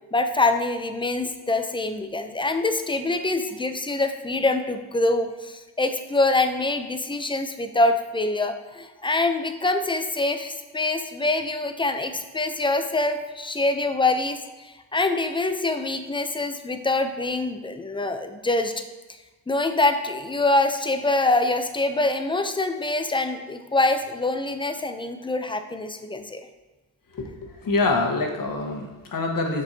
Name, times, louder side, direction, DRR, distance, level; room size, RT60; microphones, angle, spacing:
voice 1, 0.1-14.4 14.6-18.7 19.5-26.4, left 2 dB, 10° left, 8 dB, 0.5 m, -25 dB
voice 2, 27.1-29.6, left 3 dB, 45° left, 2 dB, 1.3 m, -25 dB
7.1 x 5.3 x 2.8 m, 1.2 s
cardioid pair, 75°, 46 cm